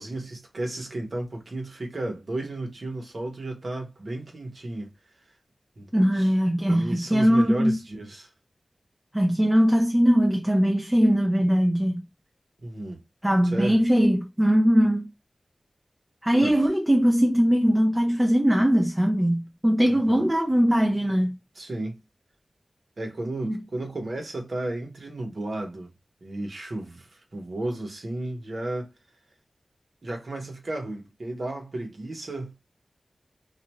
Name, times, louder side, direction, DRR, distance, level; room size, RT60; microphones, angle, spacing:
voice 1, 0.0-4.9 5.8-5.9 6.2-6.3 6.7-8.3 12.6-13.0 13.4-13.8 16.4-16.5 19.9-20.3 21.5-22.0 23.0-25.9 26.2-28.9 30.0-32.5, right 2 dB, 65° right, 1.1 m, -33 dB
voice 2, 5.9-7.8 9.1-12.0 13.2-15.1 16.2-21.3 23.4-23.6, equal, 15° right, 0.6 m, -21 dB
2.5 x 2.2 x 3.0 m
cardioid pair, 50°, 0 cm